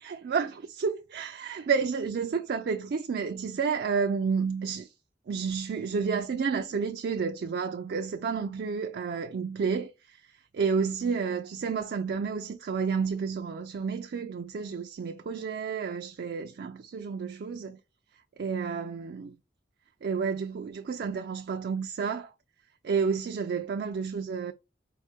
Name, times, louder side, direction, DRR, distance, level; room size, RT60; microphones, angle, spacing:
voice 1, 0.0-4.9 5.3-17.8 18.4-19.4 20.0-22.3 22.8-24.5, right 5 dB, 60° right, 0.4 m, -30 dB
4.6 x 2.1 x 4.3 m
head